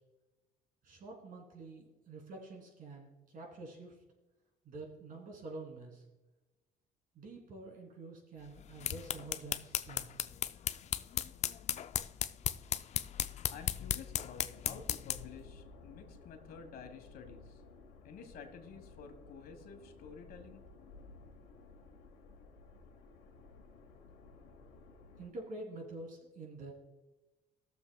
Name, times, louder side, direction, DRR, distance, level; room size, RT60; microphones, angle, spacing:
voice 1, 0.8-4.0 4.6-6.0 7.1-10.1 25.2-26.7, right 2 dB, 55° right, 0 dB, 3.1 m, -47 dB
sound 1, 8.6-15.4, left 10 dB, 40° left, 0.4 m, -36 dB
voice 2, 13.5-17.6 18.0-20.6, left 6 dB, 65° left, 6 dB, 1.5 m, -51 dB
sound 2, 14.5-25.3, left 4 dB, 85° left, 1.1 m, -56 dB
19.5 x 7.0 x 2.3 m, 1.1 s
cardioid pair, 110°, 17 cm